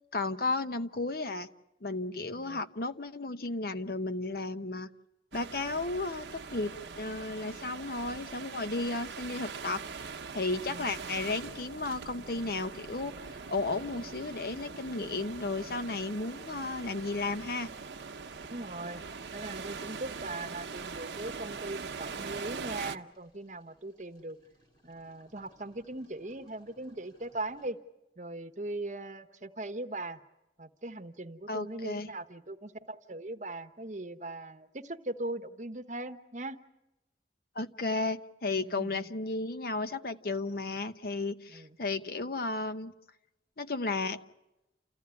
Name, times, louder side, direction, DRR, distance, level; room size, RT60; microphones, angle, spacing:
voice 1, 0.1-1.5 1.8-4.9 5.3-9.8 10.3-17.7 31.5-32.1 37.5-42.9 43.6-44.2, left 3 dB, 55° left, 10 dB, 0.9 m, -34 dB
sound 1, 5.3-23.0, right 5 dB, 85° right, 0.9 m, -42 dB
sound 2, 11.3-27.7, equal, 25° left, 4.9 m, -65 dB
voice 2, 18.5-19.0 19.3-24.4 24.8-27.8 28.2-30.2 30.6-36.6 38.6-39.1 41.5-41.8, right 2 dB, 45° right, 8 dB, 1.1 m, -40 dB
29.5 x 14.5 x 9.7 m, 0.96 s
head